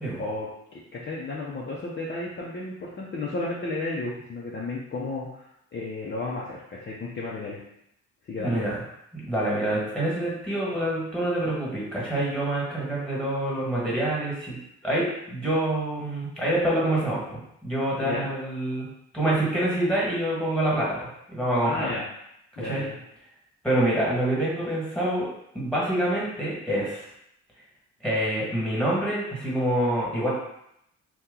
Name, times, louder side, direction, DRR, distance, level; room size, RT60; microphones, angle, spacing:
voice 1, 0.2-5.5 5.7-7.6 8.3-8.6 18.0-18.3 21.6-22.0 22.6-23.0, left 2 dB, 35° left, -5 dB, 0.6 m, -33 dB
voice 2, 8.4-8.8 9.1-18.9 19.1-21.9 22.6-22.8 23.6-25.3 25.5-27.0 28.0-30.3, right 1 dB, 5° left, -6 dB, 1.5 m, -26 dB
2.8 x 2.3 x 3.7 m, 0.79 s
cardioid pair, 90°, 30 cm